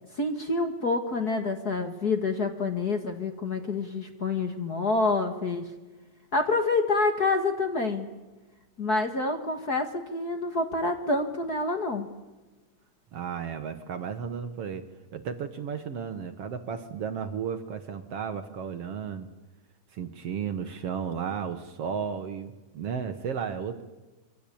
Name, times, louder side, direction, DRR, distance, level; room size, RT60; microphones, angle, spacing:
voice 1, 0.1-5.7 6.3-8.1 8.8-12.1, left 3 dB, 35° left, 6 dB, 1.9 m, -27 dB
voice 2, 13.1-14.9 15.1-19.3 19.9-23.8, right 7 dB, 60° right, 9 dB, 2.0 m, -34 dB
26.5 x 24.0 x 8.7 m, 1.1 s
omnidirectional pair, 3.5 m